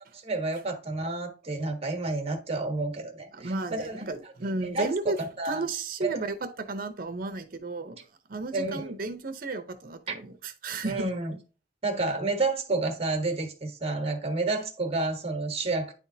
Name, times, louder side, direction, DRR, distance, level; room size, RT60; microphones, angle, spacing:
voice 1, 0.1-4.1 4.6-5.7 6.0-6.2 8.5-8.9 10.1-10.2 10.8-11.4 11.8-15.9, right 3 dB, 35° right, 1.3 m, -30 dB
voice 2, 3.3-5.2 5.4-8.0 8.3-11.1, right 3 dB, 55° right, 0.8 m, -33 dB
9.9 x 3.5 x 2.7 m
head